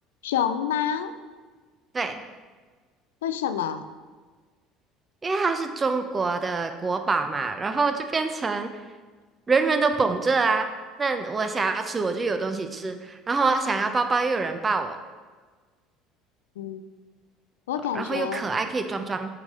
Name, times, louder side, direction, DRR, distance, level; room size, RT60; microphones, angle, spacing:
voice 1, 0.2-1.1 3.2-3.9 16.6-16.8 17.7-18.4, left 9 dB, 85° left, 10 dB, 0.3 m, -27 dB
voice 2, 5.2-8.7 9.5-10.7 11.0-15.0 17.9-19.3, right 4 dB, 25° right, 7 dB, 0.6 m, -25 dB
6.1 x 4.0 x 4.9 m, 1.4 s
hypercardioid pair, 75°, 0 cm